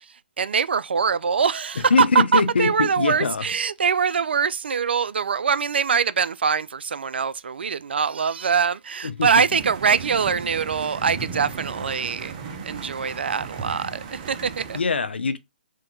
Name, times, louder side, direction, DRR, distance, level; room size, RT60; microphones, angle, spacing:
voice 1, 0.4-12.4 12.6-14.8, right 6 dB, 75° right, 0.4 m, -23 dB
voice 2, 1.9-3.5 9.0-9.3 14.7-15.4, left 4 dB, 80° left, 0.6 m, -22 dB
sound 1, 9.5-14.8, right 5 dB, 35° right, 0.8 m, -36 dB
3.6 x 2.8 x 3.8 m
hypercardioid pair, 140°, 6 cm